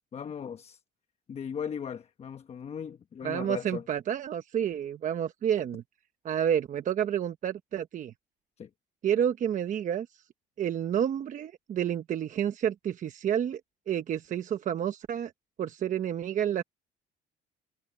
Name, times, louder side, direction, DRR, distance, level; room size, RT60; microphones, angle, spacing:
voice 1, 0.1-0.8 1.3-3.8 8.6-8.7, left 7 dB, 40° left, 1.0 m, -37 dB
voice 2, 3.2-5.8 6.2-8.1 9.0-10.1 10.6-13.6 13.9-15.3 15.6-16.6, right 9 dB, 50° right, 1.0 m, -29 dB
cardioid pair, 110°, 17 cm